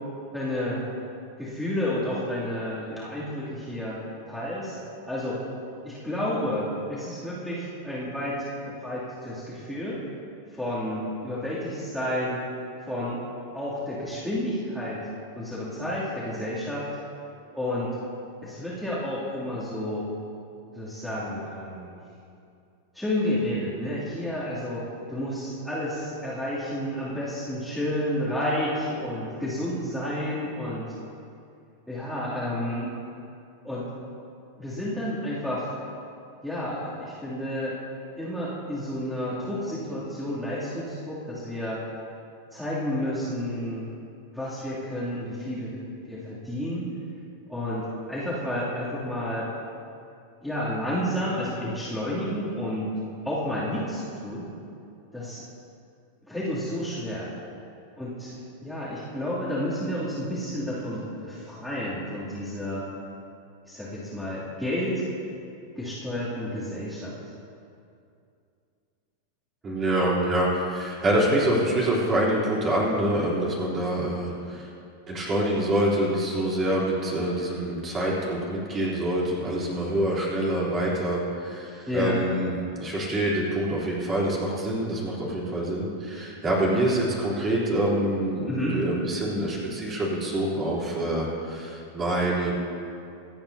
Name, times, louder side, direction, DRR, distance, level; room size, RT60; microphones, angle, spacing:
voice 1, 0.3-0.8 1.4-4.7 5.1-5.4 5.8-8.5 8.8-10.0 10.5-12.4 12.8-13.2 13.5-15.1 15.3-16.9 17.5-18.0 18.4-20.0 20.7-21.9 22.9-30.9 31.9-32.9 33.6-33.8 34.6-35.7 36.4-37.8 38.2-41.8 42.5-43.9 44.3-45.8 46.1-46.9 47.5-49.5 50.4-52.9 53.2-54.5 55.1-55.4 56.3-57.3 58.0-62.8 63.7-64.9 65.7-67.1 81.9-82.2 88.4-88.8, left 1 dB, ahead, -11 dB, 2.8 m, -30 dB
voice 2, 69.6-74.7 75.1-92.6, right 1 dB, 25° right, -6 dB, 3.4 m, -26 dB
26.0 x 8.8 x 2.8 m, 2.5 s
figure-of-eight pair, 90°, 0 cm